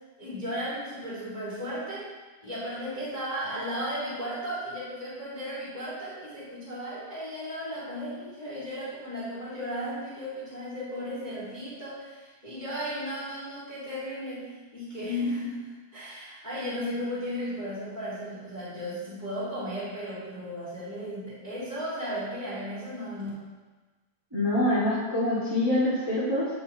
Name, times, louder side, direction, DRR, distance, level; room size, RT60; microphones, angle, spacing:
voice 1, 0.2-2.1 2.4-23.3, equal, 20° left, -9 dB, 1.3 m, -35 dB
voice 2, 24.3-26.5, left 1 dB, 25° right, -9 dB, 0.5 m, -25 dB
7.7 x 6.7 x 2.9 m, 1.3 s
omnidirectional pair, 3.7 m